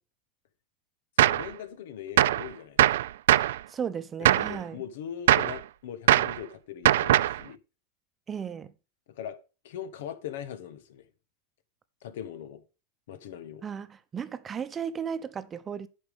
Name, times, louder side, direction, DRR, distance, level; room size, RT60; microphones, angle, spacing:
voice 1, 1.2-3.0 4.3-7.6 9.1-9.4 9.6-11.1 12.0-12.6 13.1-13.6, left 9 dB, 70° left, 1.4 m, -40 dB
Gunshot gunfire, 1.2-1.5 2.2-2.5 2.8-3.6 4.3-4.6 5.3-5.6 6.1-6.4 6.9-7.4, right 13 dB, 75° right, 0.4 m, -21 dB
voice 2, 3.7-4.8 8.3-8.7 13.6-15.9, right 7 dB, 25° right, 0.9 m, -35 dB
9.7 x 5.7 x 5.2 m
hypercardioid pair, 110°, 0 cm